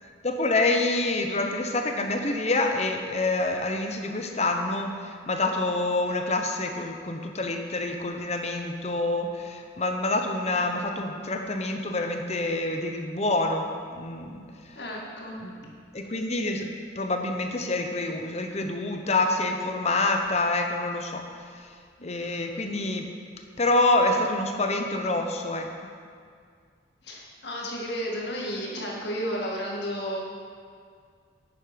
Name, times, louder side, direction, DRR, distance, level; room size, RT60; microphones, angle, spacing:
voice 1, 0.2-14.4 15.4-15.6 15.9-21.3 22.0-23.1 23.6-25.7, left 2 dB, 35° left, 4 dB, 0.8 m, -27 dB
voice 2, 14.8-15.3 27.0-30.2, equal, 55° left, -2 dB, 2.0 m, -32 dB
10.5 x 8.5 x 5.1 m, 2.1 s
head